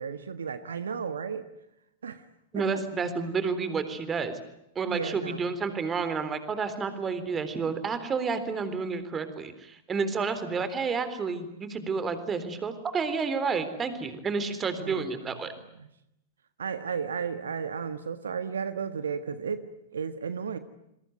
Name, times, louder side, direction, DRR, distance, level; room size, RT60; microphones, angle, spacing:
voice 1, 0.0-1.5 2.0-2.2 4.8-5.5 14.8-15.1 15.5-15.6 16.6-19.7 19.9-20.6, right 6 dB, 75° right, 11 dB, 1.5 m, -33 dB
voice 2, 2.5-4.4 4.8-15.5, right 5 dB, 20° right, 11 dB, 3.8 m, -30 dB
28.0 x 22.5 x 9.2 m, 0.83 s
figure-of-eight pair, 100°, 0 cm